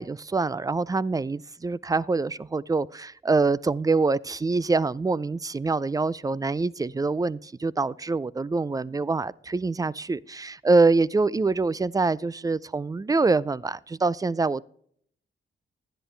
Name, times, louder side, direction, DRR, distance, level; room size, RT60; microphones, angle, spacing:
voice 1, 0.0-14.6, right 3 dB, 15° right, 0.3 m, -25 dB
11.0 x 10.0 x 3.3 m
cardioid pair, 70°, 21 cm